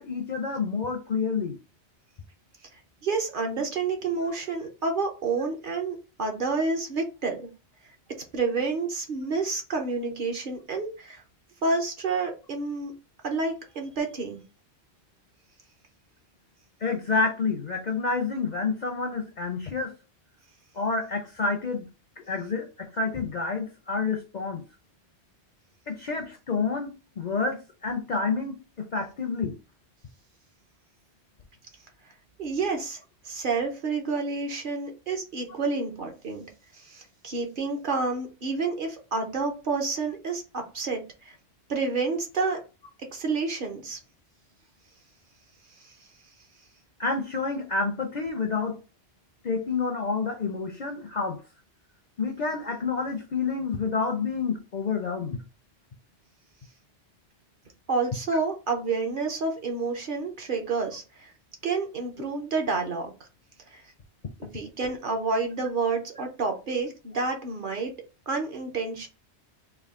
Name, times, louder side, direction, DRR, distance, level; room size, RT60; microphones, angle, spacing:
voice 1, 0.0-1.6 16.8-19.9 20.7-21.9 22.2-24.6 25.9-29.6 47.0-48.8 49.4-51.4 52.2-55.4, left 4 dB, 55° left, 0.5 m, -29 dB
voice 2, 3.0-7.5 8.3-11.2 11.6-12.9 13.2-14.4 32.4-36.5 36.7-41.4 41.7-42.6 43.1-44.0 45.8-45.9 57.9-61.3 61.6-63.1 63.7-63.8 64.4-67.9 68.3-69.1, right 4 dB, 50° right, 0.9 m, -29 dB
3.4 x 2.4 x 3.5 m
omnidirectional pair, 1.1 m